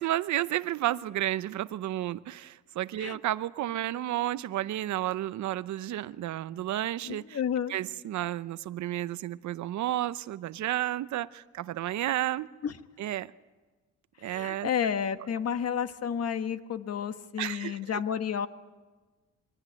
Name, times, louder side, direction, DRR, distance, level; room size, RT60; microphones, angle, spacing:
voice 1, 0.0-7.4 7.7-12.5 13.0-13.3 14.2-14.7 17.4-17.8, right 14 dB, 70° right, 0.7 m, -32 dB
voice 2, 7.0-7.7 12.6-12.8 14.2-18.5, left 8 dB, 55° left, 1.3 m, -31 dB
23.0 x 18.5 x 9.3 m
cardioid pair, 90°, 30 cm